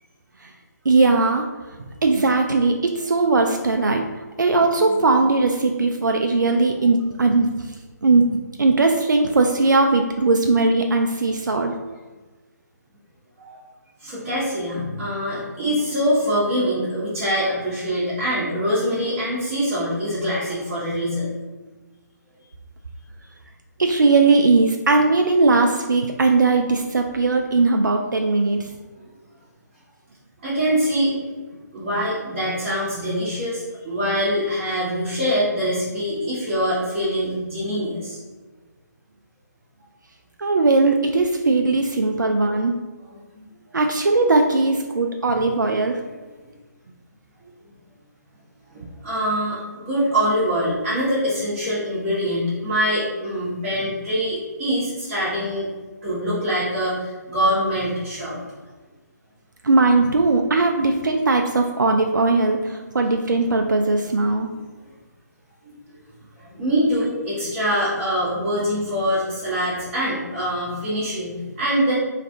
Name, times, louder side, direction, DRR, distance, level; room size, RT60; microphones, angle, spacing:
voice 1, 0.9-1.5 2.0-4.0 4.4-7.5 8.0-11.7 23.8-28.7 40.4-42.7 43.7-46.0 59.6-64.5, right 3 dB, 85° right, 3 dB, 0.4 m, -19 dB
voice 2, 14.0-21.3 29.0-29.1 30.4-31.1 31.7-38.2 43.0-43.4 46.0-46.1 48.7-55.7 56.0-58.5 65.6-65.7 66.3-71.9, equal, 30° right, -12 dB, 1.3 m, -24 dB
3.2 x 2.5 x 3.6 m, 1.3 s
figure-of-eight pair, 145°, 10 cm